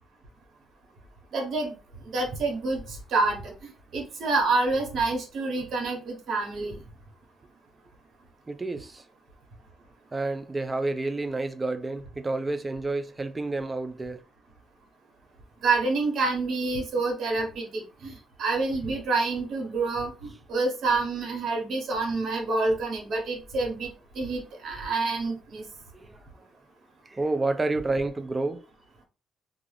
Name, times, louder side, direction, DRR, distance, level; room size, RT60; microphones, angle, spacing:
voice 1, 1.3-1.7 2.1-3.4 3.9-6.8 15.6-18.1 18.4-23.9 24.1-25.6, right 3 dB, 65° right, 1.1 m, -27 dB
voice 2, 8.5-9.0 10.1-14.2 25.9-26.2 27.1-28.6, right 2 dB, 25° right, 0.4 m, -29 dB
2.4 x 2.4 x 3.2 m
cardioid pair, 90°, 0 cm